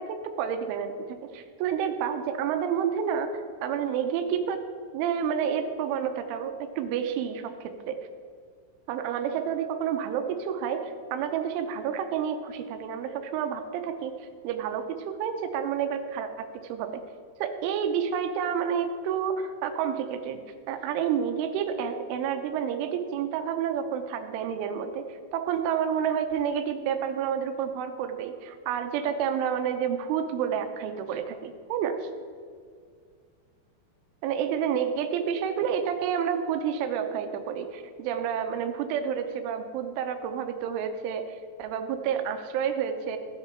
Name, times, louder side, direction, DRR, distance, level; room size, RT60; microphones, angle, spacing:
voice 1, 0.0-4.6 4.9-8.0 8.9-14.1 14.4-17.0 17.4-20.4 20.7-32.1 34.2-43.2, right 8 dB, 80° right, 7 dB, 3.2 m, -29 dB
16.0 x 6.5 x 4.5 m, 2.1 s
omnidirectional pair, 5.6 m